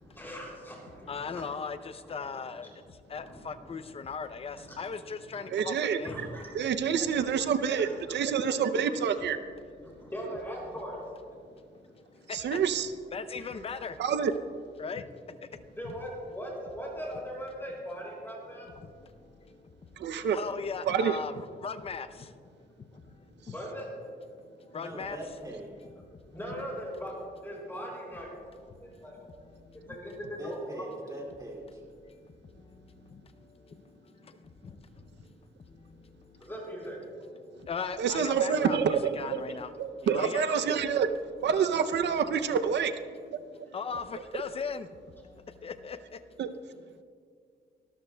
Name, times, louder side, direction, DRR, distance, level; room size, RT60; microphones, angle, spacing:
voice 1, 0.0-1.4 2.0-2.4 3.1-3.7 5.3-5.4 6.0-6.5 7.8-8.3 10.0-11.0 13.4-13.5 15.8-18.7 23.5-23.9 26.3-27.1 27.4-28.3 28.8-29.2 29.9-30.9 36.4-37.0 40.5-40.6, equal, 10° left, -4 dB, 3.9 m, -40 dB
voice 2, 1.1-6.2 6.5-6.8 9.8-10.0 11.4-12.6 13.1-14.0 14.8-15.9 18.8-23.6 24.4-25.2 26.3-26.4 28.8-30.0 32.0-35.4 35.7-36.5 37.4-40.5 43.5-45.0 45.2-46.4, left 5 dB, 35° left, 11 dB, 0.5 m, -40 dB
voice 3, 5.5-6.3 6.5-9.4 12.3-12.9 14.0-14.3 20.0-20.4 20.9-21.2 38.0-39.4 39.8-41.1 41.4-43.0 43.3-43.4 46.4-46.5, right 7 dB, 80° right, 10 dB, 0.6 m, -27 dB
voice 4, 24.8-25.8 30.4-31.8, right 1 dB, 20° right, -1 dB, 2.5 m, -41 dB
24.0 x 13.0 x 2.2 m, 2.2 s
wide cardioid pair, 155°, 18 cm